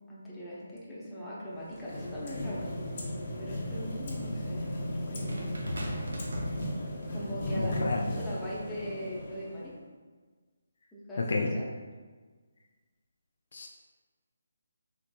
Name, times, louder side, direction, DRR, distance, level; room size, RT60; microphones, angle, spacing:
voice 1, 0.1-3.1 3.4-5.5 7.1-9.7 10.9-11.7, equal, 5° left, -9 dB, 0.7 m, -40 dB
sound 1, 1.5-9.8, left 1 dB, 40° left, 0.7 m, -36 dB
sound 2, 5.3-7.2 8.1-8.3, equal, 70° right, 0.7 m, -39 dB
voice 2, 7.6-8.0 11.2-11.5 13.5-13.7, left 3 dB, 60° left, 1 dB, 0.4 m, -30 dB
4.1 x 2.9 x 2.2 m, 1.4 s
figure-of-eight pair, 155°, 0 cm